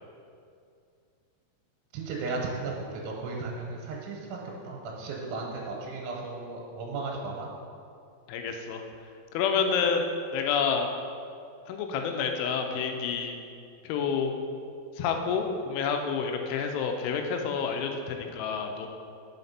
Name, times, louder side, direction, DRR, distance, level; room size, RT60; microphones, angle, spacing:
voice 1, 1.9-4.4 4.6-7.5, right 3 dB, 90° right, -2 dB, 3.1 m, -35 dB
voice 2, 8.3-8.8 9.3-10.1 10.3-10.9 11.7-13.4 13.8-14.4 15.0-18.9, left 6 dB, 85° left, 4 dB, 3.0 m, -28 dB
5.7 x 5.6 x 5.3 m, 2.4 s
omnidirectional pair, 5.5 m